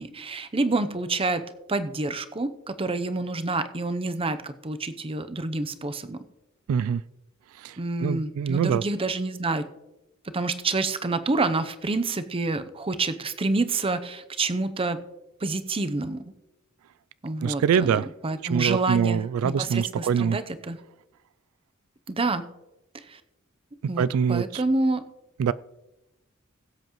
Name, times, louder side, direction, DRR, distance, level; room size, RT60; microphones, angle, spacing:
voice 1, 0.0-1.4 1.7-6.2 7.8-9.7 10.3-15.0 15.4-16.2 17.2-20.8 22.1-22.4 23.1-23.2 23.9-25.0, right 3 dB, 25° right, 10 dB, 0.7 m, -28 dB
voice 2, 6.7-7.0 7.6-8.8 17.4-18.1 18.4-20.4 24.0-24.6 25.4-25.5, right 7 dB, 85° right, 17 dB, 0.3 m, -24 dB
21.0 x 7.9 x 3.1 m, 0.98 s
head